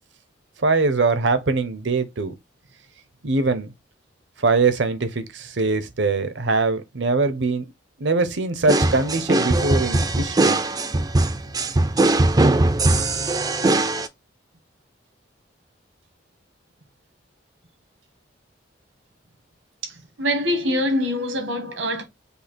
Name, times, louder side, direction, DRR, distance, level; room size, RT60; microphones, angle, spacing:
voice 1, 0.6-2.3 3.2-3.7 4.4-7.6 8.0-10.6, right 3 dB, 70° right, 0.8 m, -22 dB
sound 1, 8.7-14.1, right 2 dB, 20° right, 0.4 m, -20 dB
voice 2, 20.2-22.0, left 1 dB, 90° right, 1.5 m, -24 dB
5.5 x 2.2 x 4.3 m
head